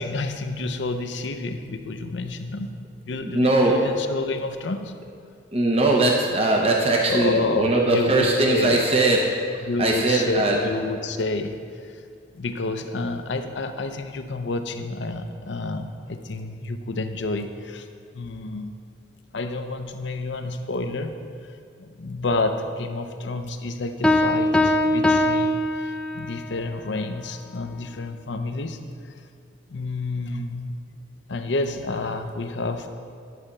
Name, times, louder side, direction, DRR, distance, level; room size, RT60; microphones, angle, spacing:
voice 1, 0.0-2.8 3.1-4.9 7.1-8.8 9.6-12.0 12.3-17.9 18.1-18.8 19.3-21.1 21.8-28.8 29.0-29.1 29.7-30.7 31.3-32.9, left 2 dB, 65° left, 7 dB, 0.6 m, -29 dB
voice 2, 3.2-3.9 5.5-10.6, right 2 dB, 30° right, -1 dB, 0.7 m, -20 dB
Piano, 24.0-26.4, left 1 dB, 5° left, 0.4 m, -21 dB
11.0 x 4.2 x 6.6 m, 2.2 s
head